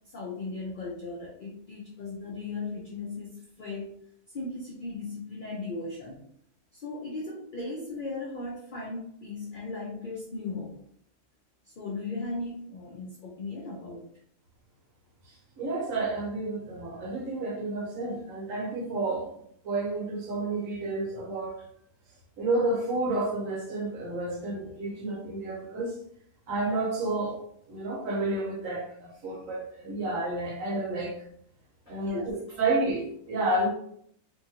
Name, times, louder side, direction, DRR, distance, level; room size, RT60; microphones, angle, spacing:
voice 1, 0.0-4.0 4.3-6.2 6.7-10.7 11.6-14.1 31.9-32.6, left 3 dB, 70° left, -4 dB, 0.4 m, -37 dB
voice 2, 15.6-19.3 19.6-21.6 22.4-25.9 26.5-27.4 27.7-31.2 31.9-33.7, right 2 dB, 65° right, -1 dB, 1.1 m, -30 dB
2.7 x 2.5 x 2.8 m, 0.68 s
omnidirectional pair, 1.5 m